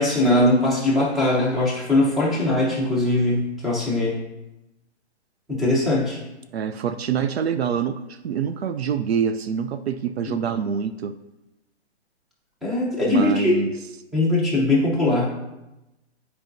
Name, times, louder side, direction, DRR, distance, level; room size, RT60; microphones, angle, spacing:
voice 1, 0.0-4.2 5.5-6.2 12.6-13.5 14.1-15.3, left 1 dB, ahead, -6 dB, 0.8 m, -20 dB
voice 2, 6.5-11.1 13.0-13.7, right 7 dB, 65° right, 9 dB, 0.5 m, -25 dB
9.2 x 4.7 x 2.6 m, 0.96 s
hypercardioid pair, 155°, 34 cm